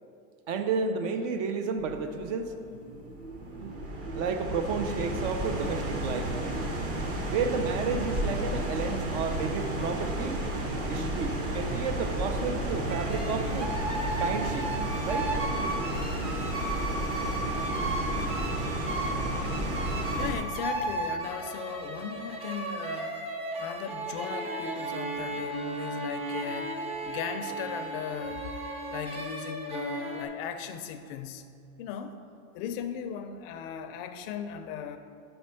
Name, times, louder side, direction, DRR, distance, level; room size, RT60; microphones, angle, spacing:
voice 1, 0.5-2.5 3.6-3.8 4.1-6.3 7.3-10.4 10.8-13.8 14.2-14.7 15.0-15.3, right 5 dB, 55° right, 7 dB, 0.7 m, -31 dB
sound 1, 1.8-20.3, right 1 dB, 35° right, 0.9 m, -32 dB
sound 2, 12.9-30.2, right 2 dB, 15° right, 0.5 m, -35 dB
voice 2, 20.2-23.3 23.6-28.4 28.9-31.5 31.8-32.2 32.5-35.0, left 8 dB, 45° left, 9 dB, 0.4 m, -37 dB
5.4 x 4.3 x 5.6 m, 2.5 s
supercardioid pair, 125°, 41 cm